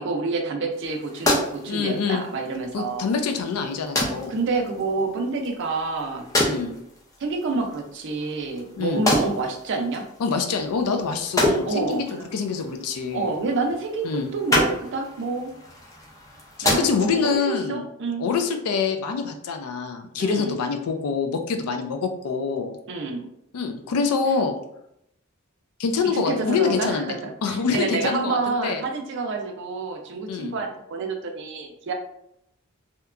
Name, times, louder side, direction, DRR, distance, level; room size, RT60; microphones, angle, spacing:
voice 1, 0.0-3.0 4.3-6.3 7.2-10.0 11.6-12.3 13.1-15.5 16.6-18.3 20.1-20.5 22.9-23.3 26.0-31.9, right 3 dB, 55° right, 3 dB, 0.4 m, -28 dB
sound 1, 0.7-17.4, left 1 dB, 15° left, 0.4 m, -29 dB
voice 2, 1.7-2.2 2.7-4.3 6.4-6.7 8.8-9.0 10.2-12.1 12.3-13.3 14.0-14.3 16.6-17.8 18.2-22.8 23.5-24.6 25.8-27.1 27.4-28.8 30.3-30.6, left 5 dB, 85° left, 6 dB, 0.4 m, -25 dB
2.8 x 2.2 x 2.3 m, 0.78 s
head